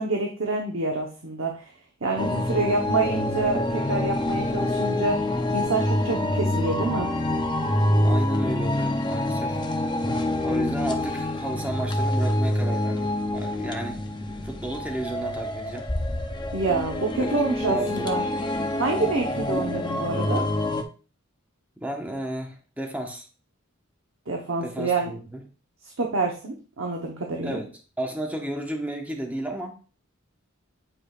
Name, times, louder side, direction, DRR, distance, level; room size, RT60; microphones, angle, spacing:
voice 1, 0.0-1.7 2.0-7.1 16.5-18.2 18.7-20.4 24.3-25.1 26.0-27.6, right 3 dB, 70° right, 1 dB, 1.0 m, -27 dB
sound 1, 2.2-20.8, left 1 dB, 20° left, 0.6 m, -26 dB
voice 2, 8.0-9.6 10.4-14.0 14.4-15.9 17.2-17.3 17.7-18.1 21.8-23.3 24.6-25.4 27.4-27.7 28.0-29.8, right 1 dB, 5° right, 2 dB, 1.1 m, -33 dB
8.9 x 4.9 x 2.4 m, 0.36 s
head